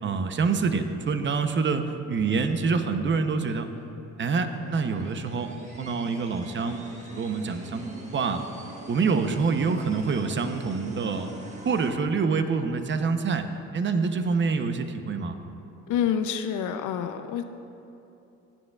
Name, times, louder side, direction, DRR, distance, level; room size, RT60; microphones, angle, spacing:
voice 1, 0.0-3.7 4.2-6.8 7.1-8.4 8.9-11.3 11.6-13.5 13.7-15.3, right 4 dB, 40° right, 8 dB, 0.7 m, -26 dB
sound 1, 4.5-11.9, right 1 dB, 25° right, 1.5 m, -44 dB
voice 2, 15.9-17.4, left 8 dB, 80° left, 8 dB, 0.5 m, -27 dB
16.0 x 8.9 x 2.3 m, 2.8 s
cardioid pair, 90°, 30 cm